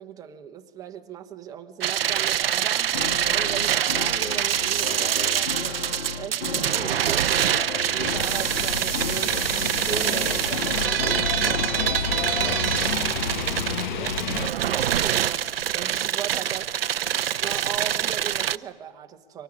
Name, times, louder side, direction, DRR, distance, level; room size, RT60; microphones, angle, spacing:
voice 1, 0.0-2.9 3.2-16.7 17.4-19.4, right 9 dB, 10° right, 1.2 m, -38 dB
sound 1, 1.8-18.6, right 10 dB, 75° right, 0.7 m, -25 dB
sound 2, 2.9-14.1, left 6 dB, 65° left, 1.5 m, -35 dB
sound 3, 8.0-14.5, left 7 dB, 50° left, 1.3 m, -31 dB
24.0 x 19.5 x 9.7 m
hypercardioid pair, 150°, 30 cm